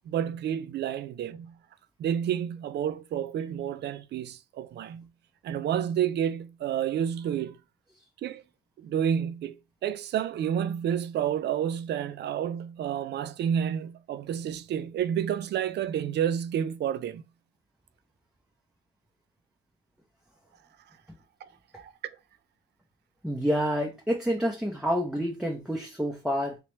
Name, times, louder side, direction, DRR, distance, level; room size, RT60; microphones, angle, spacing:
voice 1, 0.1-1.5 2.0-5.1 5.4-7.6 8.2-8.4 8.8-17.2 21.4-21.5 21.8-21.9, right 9 dB, 60° right, 0.4 m, -30 dB
voice 2, 23.2-26.6, equal, 5° right, 0.6 m, -28 dB
3.0 x 2.9 x 3.1 m
cardioid pair, 90°, 20 cm